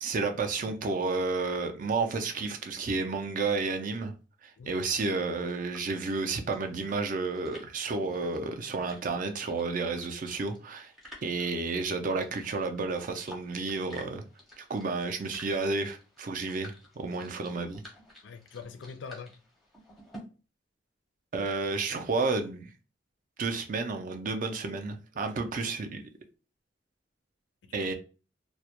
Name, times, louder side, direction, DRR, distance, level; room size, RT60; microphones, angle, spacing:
voice 1, 0.0-4.1 4.4-10.9 11.2-14.2 14.6-17.8 21.3-22.7 23.4-26.0 27.7-27.9, right 3 dB, 45° right, 0.4 m, -31 dB
sound 1, 4.9-20.2, equal, ahead, 0.6 m, -53 dB
voice 2, 18.2-19.3 25.2-25.7 27.6-27.9, left 5 dB, 65° left, 0.4 m, -45 dB
2.2 x 2.1 x 2.8 m
head